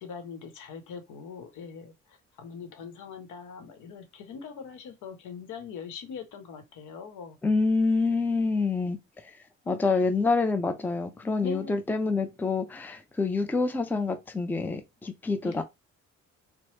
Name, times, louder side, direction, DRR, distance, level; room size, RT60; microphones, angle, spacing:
voice 1, 0.0-7.4 8.3-8.5 9.6-9.8 11.4-11.8 15.4-15.6, left 6 dB, 80° left, 0.9 m, -42 dB
voice 2, 7.4-9.0 9.7-15.6, left 3 dB, 5° left, 0.4 m, -27 dB
3.0 x 2.0 x 3.1 m
cardioid pair, 90°, 30 cm